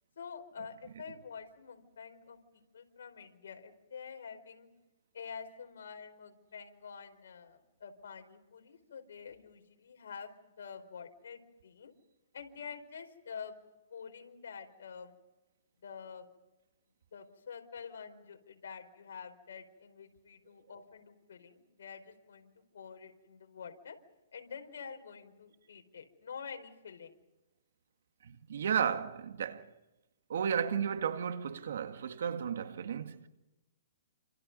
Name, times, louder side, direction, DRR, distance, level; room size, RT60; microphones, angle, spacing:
voice 1, 0.2-4.7 5.1-10.3 10.6-11.9 12.3-13.5 13.9-15.2 15.8-16.3 17.1-24.0 24.3-27.2, left 6 dB, 75° left, 4.7 m, -47 dB
voice 2, 28.2-29.7 30.3-33.3, right 7 dB, 70° right, 2.0 m, -33 dB
28.5 x 27.0 x 5.5 m
hypercardioid pair, 160°, 0 cm